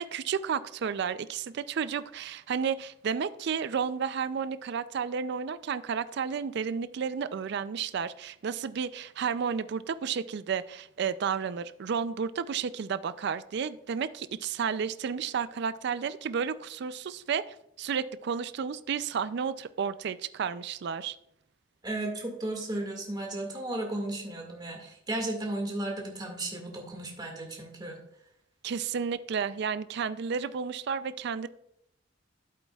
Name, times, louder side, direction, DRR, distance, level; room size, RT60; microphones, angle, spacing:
voice 1, 0.0-17.4 17.8-21.2 28.6-31.5, right 6 dB, 55° right, 14 dB, 0.4 m, -32 dB
voice 2, 21.8-28.0, right 1 dB, 20° right, 0 dB, 1.9 m, -34 dB
11.5 x 8.3 x 2.3 m, 0.77 s
head